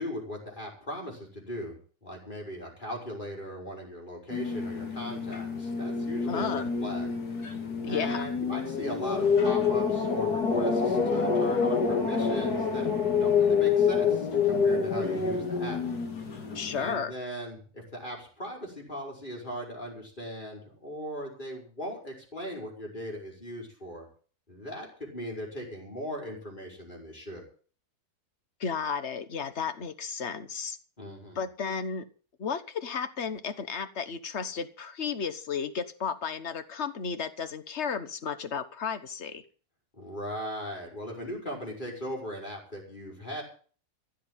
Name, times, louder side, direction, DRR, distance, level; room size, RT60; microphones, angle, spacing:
voice 1, 0.0-7.1 7.8-12.9 13.2-15.8 16.7-24.1 24.5-27.4 31.0-31.4 39.9-43.4, equal, 30° left, 0 dB, 5.1 m, -38 dB
sound 1, 4.3-17.0, left 5 dB, 75° left, 2.6 m, -27 dB
voice 2, 6.3-6.7 7.8-8.3 16.5-17.1 28.6-30.8 31.3-32.0 32.4-39.4, left 6 dB, 45° left, 12 dB, 1.4 m, -33 dB
16.0 x 6.5 x 9.3 m, 0.42 s
omnidirectional pair, 1.7 m